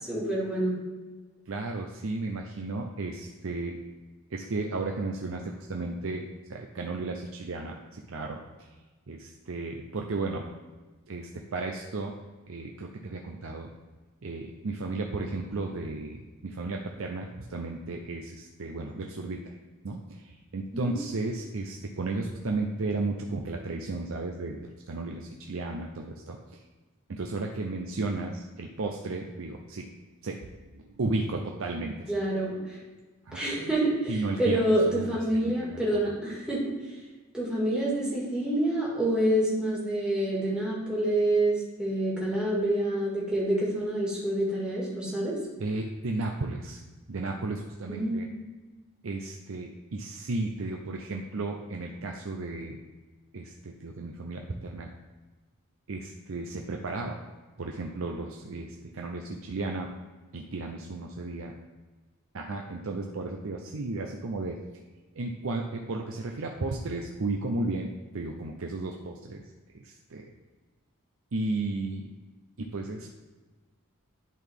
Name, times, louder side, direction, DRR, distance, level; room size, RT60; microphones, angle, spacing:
voice 1, 0.1-0.8 20.7-20.9 32.1-32.8 33.3-36.6 37.3-45.4 47.9-48.2, right 1 dB, 5° right, -6 dB, 1.9 m, -27 dB
voice 2, 1.5-3.8 4.3-8.4 9.1-10.5 11.1-12.1 12.5-13.7 14.2-19.5 19.8-26.4 27.1-29.9 30.2-30.4 30.9-32.1 33.3-33.4 34.1-34.6 34.9-35.8 36.1-36.2 45.6-46.8 47.1-48.3 49.0-52.8 53.3-54.9 55.9-57.2 57.6-59.9 60.3-61.5 62.3-64.6 65.2-69.4 69.8-70.3 71.3-72.1 72.6-73.1, right 3 dB, 65° right, 2 dB, 0.6 m, -34 dB
11.0 x 4.0 x 3.6 m, 1.3 s
head